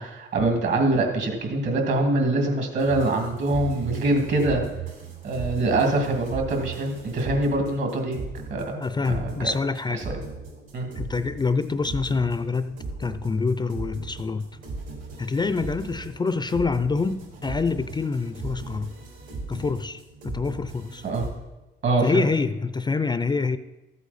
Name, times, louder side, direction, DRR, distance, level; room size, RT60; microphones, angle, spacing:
voice 1, 0.0-4.6 5.2-8.2 8.5-8.8 9.2-9.5 10.7-10.9 21.0-21.2 21.8-22.2, right 2 dB, 65° right, 2.4 m, -24 dB
sound 1, 2.8-21.3, right 4 dB, 80° right, 4.6 m, -38 dB
voice 2, 8.8-10.1 11.0-14.5 15.2-18.9 19.5-21.0 22.0-23.6, left 4 dB, 20° left, 0.4 m, -26 dB
14.0 x 8.3 x 4.2 m
cardioid pair, 90°, 20 cm